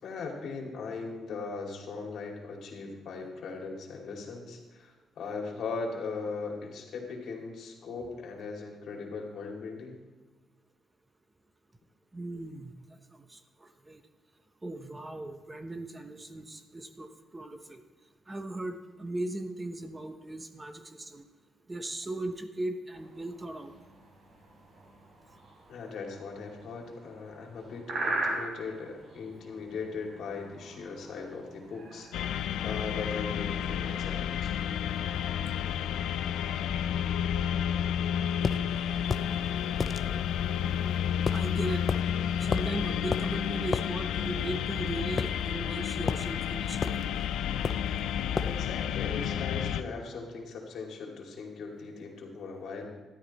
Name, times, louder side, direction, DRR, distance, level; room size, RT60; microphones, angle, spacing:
voice 1, 0.0-10.0 25.7-34.6 48.5-52.9, left 4 dB, 65° left, 1 dB, 2.6 m, -39 dB
voice 2, 12.1-14.0 14.6-17.8 18.3-21.2 21.7-23.7 35.6-35.7 41.3-41.9 42.4-47.1, right 1 dB, 20° right, 7 dB, 1.0 m, -38 dB
sound 1, 22.9-32.9, right 2 dB, 60° right, 4.7 m, -40 dB
sound 2, 32.1-49.8, left 9 dB, 85° left, 0.5 m, -31 dB
sound 3, 38.4-38.6 39.1-39.3 39.8-40.0 41.3-41.5 41.9-42.0 42.5-42.8 43.1-43.3 43.7-43.9 45.2-45.7 46.1-46.3 46.8-47.1 47.6-47.9 48.4-48.6, left 5 dB, 40° left, 0.6 m, -31 dB
13.0 x 11.5 x 4.2 m, 1.3 s
cardioid pair, 90°, 0 cm